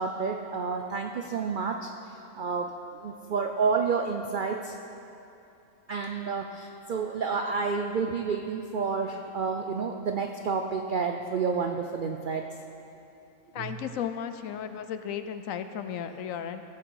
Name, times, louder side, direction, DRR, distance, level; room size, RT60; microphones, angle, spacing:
voice 1, 0.0-4.8 5.9-12.5 13.6-13.7, right 5 dB, 70° right, 4 dB, 0.5 m, -30 dB
voice 2, 13.5-16.6, left 8 dB, 75° left, 10 dB, 1.0 m, -34 dB
16.5 x 7.6 x 4.7 m, 2.8 s
omnidirectional pair, 1.5 m